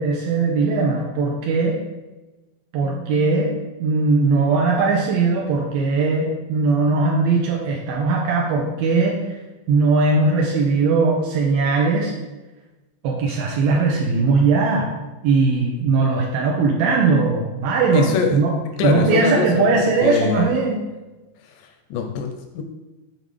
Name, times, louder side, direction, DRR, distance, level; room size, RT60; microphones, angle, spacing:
voice 1, 0.0-1.8 2.7-3.5 3.8-9.4 9.7-12.1 13.0-14.9 15.2-18.5 18.8-20.8, right 4 dB, 80° right, -2 dB, 2.4 m, -19 dB
voice 2, 17.9-18.4 18.8-20.5 21.4-22.6, left 6 dB, 85° left, 5 dB, 1.9 m, -24 dB
7.5 x 5.2 x 3.3 m, 1.1 s
omnidirectional pair, 4.3 m